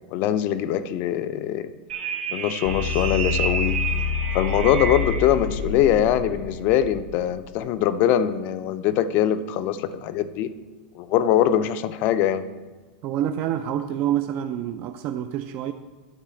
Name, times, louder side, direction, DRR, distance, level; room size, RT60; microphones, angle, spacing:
voice 1, 0.1-1.7 2.3-3.8 4.3-10.5 10.9-12.5, left 10 dB, 40° left, 13 dB, 0.4 m, -22 dB
sound 1, 1.9-5.4, right 6 dB, 90° right, 0.9 m, -30 dB
sound 2, 2.7-7.6, left 6 dB, 70° left, 0.8 m, -28 dB
voice 2, 13.0-15.7, right 11 dB, 35° right, 8 dB, 0.3 m, -27 dB
9.2 x 3.7 x 6.9 m, 1.3 s
supercardioid pair, 155°, 5 cm